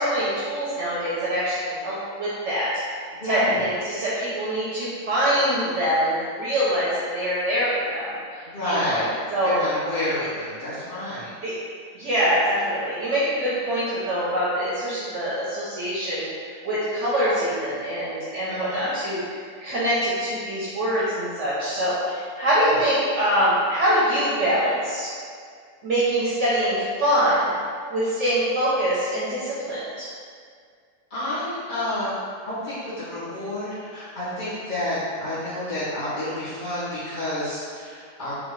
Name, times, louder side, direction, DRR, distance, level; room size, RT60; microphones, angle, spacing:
voice 1, 0.0-2.7 3.3-9.0 9.3-9.6 11.4-11.5 11.9-16.2 16.6-19.2 19.6-25.1 25.8-27.5 27.9-30.1, equal, 55° right, -9 dB, 0.9 m, -24 dB
voice 2, 3.2-3.6 8.5-9.0 9.4-11.3 18.5-18.9 22.7-22.8 31.1-32.2 32.5-38.4, left 1 dB, 35° left, -13 dB, 1.0 m, -29 dB
3.8 x 2.8 x 3.1 m, 2.1 s
omnidirectional pair, 1.7 m